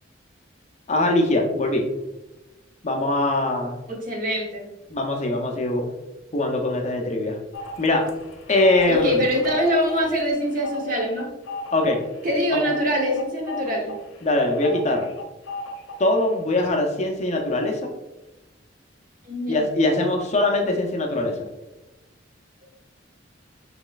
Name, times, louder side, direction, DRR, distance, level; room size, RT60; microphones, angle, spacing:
voice 1, 0.9-1.8 2.8-3.7 4.9-5.8 6.3-7.4 7.8-8.0 8.5-9.2 11.7-12.0 12.5-12.6 14.2-15.1 16.0-17.9 19.5-21.4, left 2 dB, 35° left, 2 dB, 0.6 m, -22 dB
voice 2, 3.9-4.7 8.9-11.3 12.2-13.9 19.2-19.6, equal, 45° right, 0 dB, 1.0 m, -24 dB
sound 1, 7.5-16.2 16.6-16.7, left 3 dB, 80° left, 0.7 m, -37 dB
5.8 x 3.1 x 2.4 m, 1.0 s
head